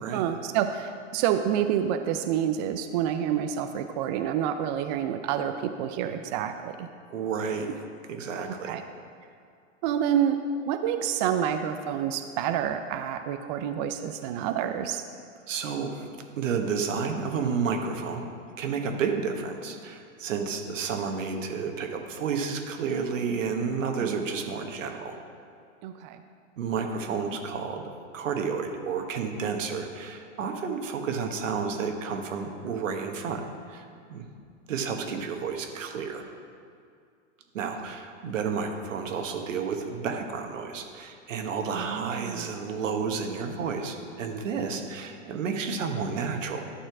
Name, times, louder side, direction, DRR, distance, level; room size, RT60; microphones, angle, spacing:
voice 1, 0.1-6.9 7.7-7.8 8.6-8.8 9.8-10.4 10.7-15.0 24.0-24.3 25.8-26.2 34.9-35.1 37.6-37.7 41.7-42.5, right 9 dB, 35° right, 7 dB, 0.4 m, -28 dB
voice 2, 7.1-7.7 8.1-8.8 15.5-18.3 18.6-25.2 26.6-27.9 28.1-33.4 33.7-34.3 34.7-36.2 37.5-46.6, right 5 dB, 80° right, 4 dB, 1.3 m, -31 dB
11.5 x 4.4 x 6.0 m, 2.3 s
hypercardioid pair, 125°, 38 cm